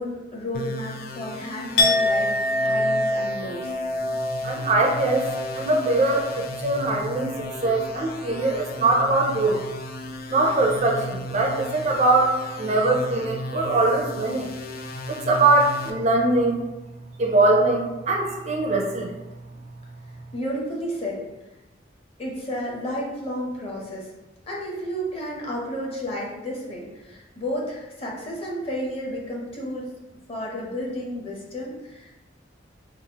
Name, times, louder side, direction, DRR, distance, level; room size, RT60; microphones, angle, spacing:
voice 1, 0.0-3.8 20.3-21.2 22.2-24.1 24.5-29.9 30.3-32.1, equal, 30° left, -3 dB, 0.7 m, -32 dB
sound 1, 0.5-15.9, left 1 dB, 50° left, 0.3 m, -36 dB
Chink clink, 1.8-7.7 8.0-8.4, left 1 dB, 90° left, 0.6 m, -26 dB
voice 2, 4.1-9.6 10.3-14.5 15.1-16.6 17.2-19.1, right 2 dB, 35° right, 1 dB, 0.4 m, -22 dB
4.0 x 2.4 x 2.8 m, 1.0 s
head